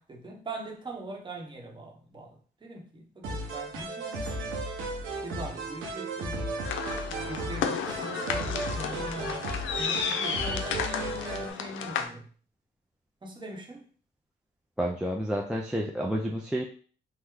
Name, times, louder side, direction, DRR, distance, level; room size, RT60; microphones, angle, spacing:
voice 1, 0.0-4.5 5.2-6.5 7.1-12.3 13.2-13.9, right 2 dB, 25° right, 0.9 m, -41 dB
sound 1, 3.2-11.5, right 2 dB, 85° right, 0.9 m, -35 dB
sound 2, 6.6-12.0, left 7 dB, 75° left, 0.5 m, -32 dB
voice 2, 14.8-16.6, equal, 5° right, 0.4 m, -30 dB
3.1 x 2.0 x 3.6 m
cardioid pair, 90°, 20 cm